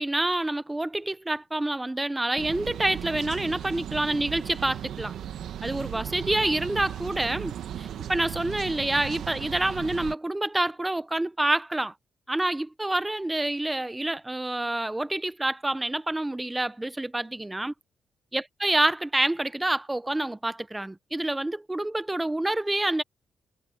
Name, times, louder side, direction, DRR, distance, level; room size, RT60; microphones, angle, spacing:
voice 1, 0.0-5.1 5.6-11.9 12.3-17.7 18.3-23.0, right 1 dB, 10° right, 0.8 m, -27 dB
sound 1, 2.4-10.1, right 10 dB, 80° right, 1.3 m, -36 dB
cardioid pair, 95°, 0 cm